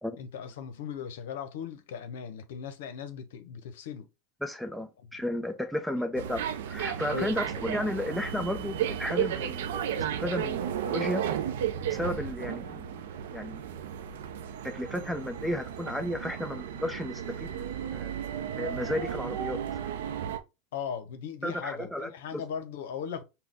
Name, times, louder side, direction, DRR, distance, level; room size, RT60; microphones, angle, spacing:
voice 1, 0.2-4.1 6.0-6.1 7.1-7.6 20.7-23.2, left 7 dB, 80° left, 0.9 m, -38 dB
voice 2, 4.4-9.9 10.2-11.2 11.9-13.8 14.6-18.1 18.5-19.6 21.4-22.4, left 1 dB, ahead, 0.7 m, -33 dB
sound 1, 6.2-20.4, right 9 dB, 80° right, 0.6 m, -34 dB
5.9 x 2.2 x 3.7 m
supercardioid pair, 115°, 0 cm